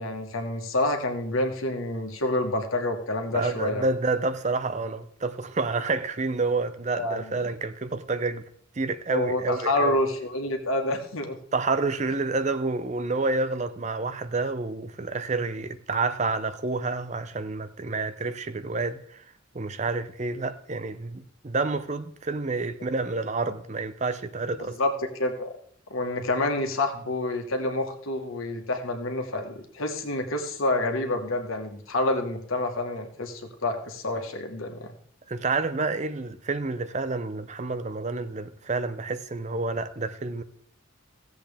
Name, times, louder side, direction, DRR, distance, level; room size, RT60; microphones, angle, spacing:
voice 1, 0.0-3.8 7.0-7.2 9.1-11.4 24.8-25.5 25.9-34.9, left 2 dB, 90° left, 1.6 m, -28 dB
voice 2, 3.3-8.5 8.8-10.0 11.5-19.2 19.5-24.8 35.3-40.4, right 3 dB, 35° right, 0.6 m, -29 dB
16.0 x 7.9 x 3.5 m
head